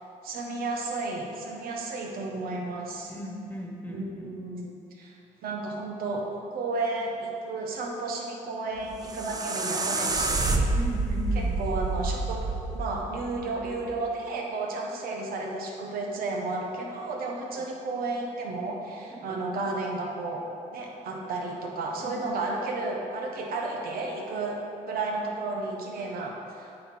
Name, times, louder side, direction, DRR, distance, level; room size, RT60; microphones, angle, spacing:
voice 1, 0.2-3.1 3.9-5.1 5.4-10.7 11.3-20.4 20.7-24.6 24.9-26.7, right 3 dB, 75° right, 0 dB, 1.2 m, -33 dB
voice 2, 3.1-4.3 10.7-11.6 17.5-17.6 19.2-19.3 22.0-22.1, equal, 10° left, -1 dB, 1.5 m, -37 dB
sound 1, 8.8-13.9, right 3 dB, 25° right, 0.7 m, -28 dB
8.8 x 4.4 x 4.5 m, 2.5 s
cardioid pair, 75°, 15 cm